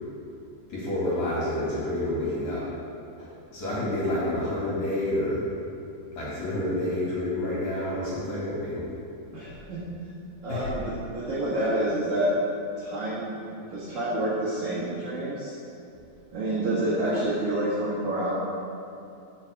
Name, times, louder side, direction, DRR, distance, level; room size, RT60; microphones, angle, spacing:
voice 1, 0.7-2.6 3.2-5.4 6.1-8.9 10.5-10.7, left 1 dB, 50° left, -8 dB, 2.9 m, -29 dB
voice 2, 9.3-9.8 10.4-12.3 12.8-13.4 13.7-15.5 16.3-18.3, right 1 dB, 55° right, -10 dB, 2.5 m, -28 dB
7.4 x 6.0 x 6.4 m, 2.6 s
omnidirectional pair, 4.9 m